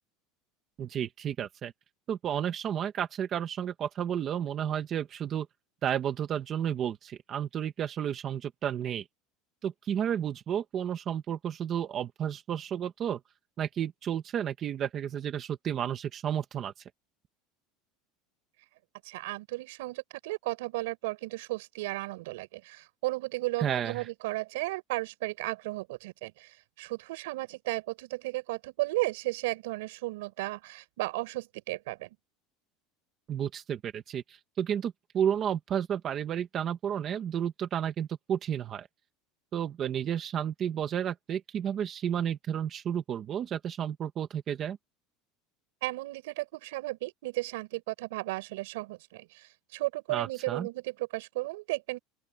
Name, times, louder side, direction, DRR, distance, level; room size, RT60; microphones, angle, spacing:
voice 1, 0.8-1.7 2.1-5.5 5.8-9.0 9.6-13.2 13.6-16.7 23.6-24.1 33.3-38.9 39.5-44.8 50.1-50.7, right 9 dB, 25° right, 1.4 m, -32 dB
voice 2, 19.0-32.1 45.8-52.0, right 20 dB, 80° right, 6.2 m, -34 dB
open air
cardioid pair, 175°, 0 cm